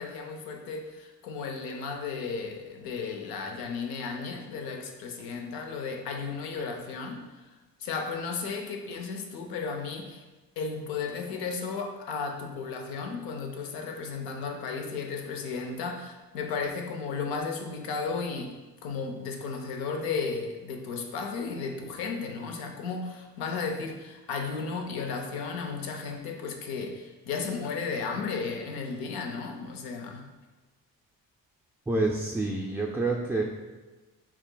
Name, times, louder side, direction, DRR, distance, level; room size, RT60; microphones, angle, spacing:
voice 1, 0.0-7.5 7.8-10.2 10.6-18.5 18.8-30.3, left 5 dB, 90° left, 3 dB, 0.7 m, -34 dB
voice 2, 31.9-33.4, right 2 dB, 5° right, -2 dB, 0.3 m, -27 dB
5.9 x 3.6 x 2.2 m, 1.2 s
cardioid pair, 95°, 36 cm